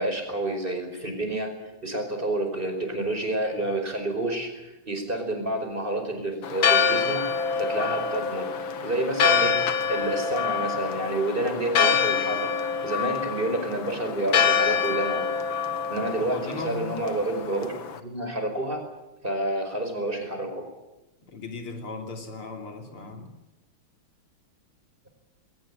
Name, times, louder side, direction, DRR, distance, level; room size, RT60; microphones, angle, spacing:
voice 1, 0.0-1.5 1.8-8.5 8.8-9.6 9.9-12.5 12.8-15.3 15.9-18.8 19.2-20.7, right 1 dB, 25° right, 5 dB, 5.3 m, -29 dB
Church bell, 6.4-18.0, left 6 dB, 65° left, 2.1 m, -26 dB
voice 2, 16.3-17.0 21.3-23.3, left 3 dB, 85° left, 4 dB, 4.1 m, -37 dB
21.5 x 19.0 x 9.9 m, 0.96 s
omnidirectional pair, 2.4 m